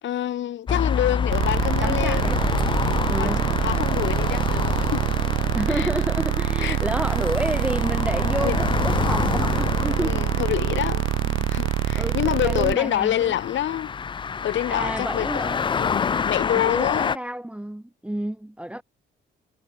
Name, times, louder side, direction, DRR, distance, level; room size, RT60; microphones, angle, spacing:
voice 1, 0.0-2.3 2.7-5.0 5.7-5.9 6.6-6.8 8.4-8.6 10.0-11.1 11.5-13.9 14.4-15.4 15.7-17.1, left 11 dB, 70° left, 1.6 m, -27 dB
sound 1, 0.7-17.2, left 6 dB, 25° left, 0.4 m, -28 dB
sound 2, 1.3-12.7, right 16 dB, 85° right, 0.9 m, -25 dB
voice 2, 1.8-2.5 3.1-3.5 5.5-10.2 11.3-11.4 11.9-13.4 14.7-15.7 16.5-18.8, right 1 dB, 5° right, 1.0 m, -30 dB
cardioid pair, 90°, 20 cm